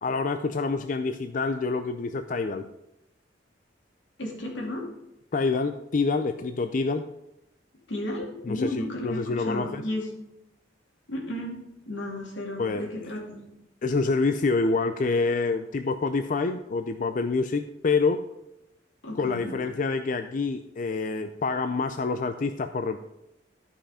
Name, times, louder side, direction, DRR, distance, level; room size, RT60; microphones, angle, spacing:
voice 1, 0.0-2.7 5.3-7.1 8.5-9.8 12.6-12.9 13.8-18.2 19.1-23.0, left 4 dB, 45° left, 8 dB, 0.4 m, -27 dB
voice 2, 4.2-4.9 7.9-10.1 11.1-13.4 19.0-19.6, left 1 dB, 80° left, 0 dB, 2.6 m, -33 dB
12.5 x 5.6 x 5.0 m, 0.88 s
head